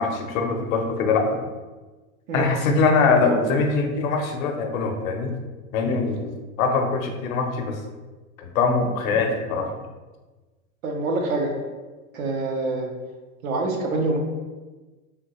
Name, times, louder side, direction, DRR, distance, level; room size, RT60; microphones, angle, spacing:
voice 1, 0.0-1.3 2.3-5.3 5.7-7.8 8.4-9.7, left 4 dB, 75° left, 3 dB, 0.7 m, -22 dB
voice 2, 10.8-11.6 12.1-12.9 13.4-14.2, right 2 dB, 80° right, 2 dB, 0.8 m, -25 dB
3.4 x 2.3 x 2.9 m, 1.2 s
supercardioid pair, 135°, 41 cm